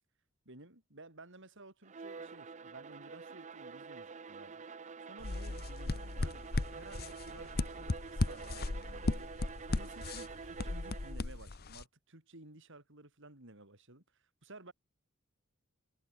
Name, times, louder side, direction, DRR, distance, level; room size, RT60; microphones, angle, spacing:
voice 1, 0.5-4.6 5.0-9.3 9.7-14.7, right 2 dB, 65° right, 5.3 m, -55 dB
Bowed string instrument, 1.8-11.3, right 5 dB, 35° right, 0.6 m, -48 dB
sound 1, 5.2-11.8, left 2 dB, 50° left, 0.9 m, -36 dB
head